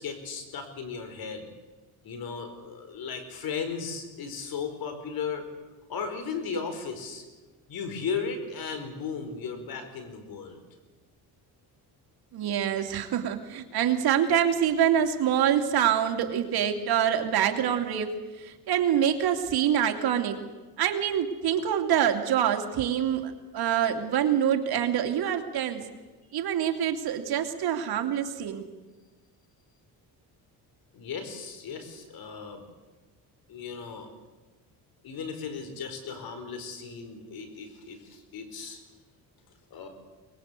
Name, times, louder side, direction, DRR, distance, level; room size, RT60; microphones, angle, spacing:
voice 1, 0.0-1.5 2.0-5.5 5.9-7.2 7.7-10.6 30.9-32.6 33.5-34.1 35.0-38.8 39.7-39.9, left 5 dB, 65° left, 8 dB, 4.8 m, -36 dB
voice 2, 12.3-18.1 18.4-20.4 20.8-25.8 26.3-28.7, right 9 dB, 70° right, 5 dB, 2.7 m, -25 dB
23.5 x 21.0 x 8.3 m, 1.2 s
cardioid pair, 105°, 38 cm